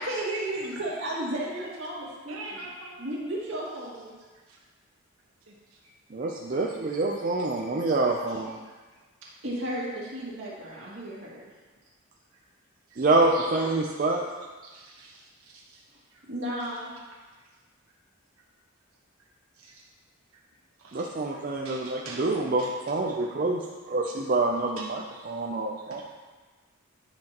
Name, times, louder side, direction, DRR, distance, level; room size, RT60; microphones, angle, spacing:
voice 1, 0.0-2.6 3.0-4.1 7.8-7.9 8.3-8.4 9.4-11.5 15.2-15.3 15.9-16.0 16.3-17.0, right 1 dB, 60° right, -6 dB, 2.2 m, -34 dB
voice 2, 2.2-3.0 4.5-4.6 5.5-5.6 5.8-5.9 6.2-6.6 8.6-8.8 12.9-13.3 14.6-15.8 16.1-16.2 19.5-19.8 20.8-22.3 22.6-22.8 23.2-23.3 24.8-24.9 25.9-26.0, right 3 dB, 85° right, -3 dB, 1.1 m, -46 dB
voice 3, 6.1-8.6 13.0-14.3 20.9-26.0, right 2 dB, 40° right, -1 dB, 0.5 m, -27 dB
10.0 x 5.8 x 3.0 m, 1.3 s
head